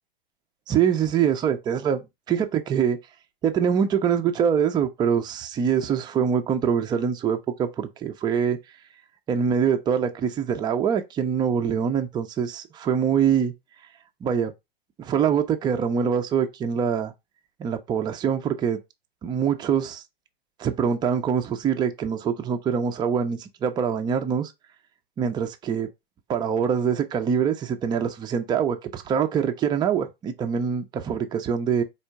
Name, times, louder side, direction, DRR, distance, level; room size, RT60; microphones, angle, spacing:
voice 1, 0.7-3.0 3.4-8.6 9.3-13.5 14.2-14.5 15.0-17.1 17.6-18.8 19.2-20.0 20.6-24.5 25.2-25.9 26.3-31.8, right 7 dB, 15° right, 0.5 m, -24 dB
4.3 x 2.5 x 4.6 m
figure-of-eight pair, 100°, 29 cm